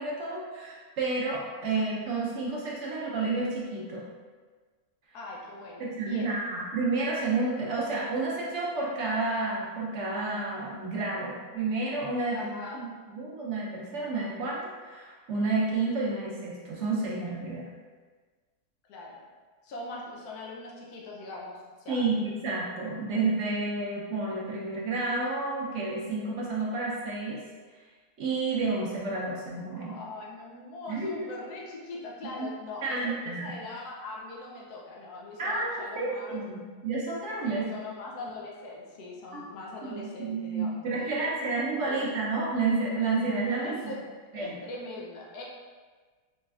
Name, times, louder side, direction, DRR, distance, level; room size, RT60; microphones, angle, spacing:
voice 1, 0.0-4.0 5.8-17.6 21.9-27.4 28.2-30.0 30.9-31.3 32.4-32.5 32.8-33.5 35.4-37.7 39.8-43.8 44.3-44.6, right 3 dB, 60° right, -5 dB, 0.9 m, -30 dB
voice 2, 5.1-6.3 12.3-12.8 18.9-19.2 19.6-22.1 29.7-36.4 37.4-41.3 41.9-42.1 43.5-44.1 44.3-45.4, left 2 dB, 90° left, -3 dB, 1.2 m, -41 dB
4.1 x 3.1 x 2.3 m, 1.4 s
omnidirectional pair, 1.6 m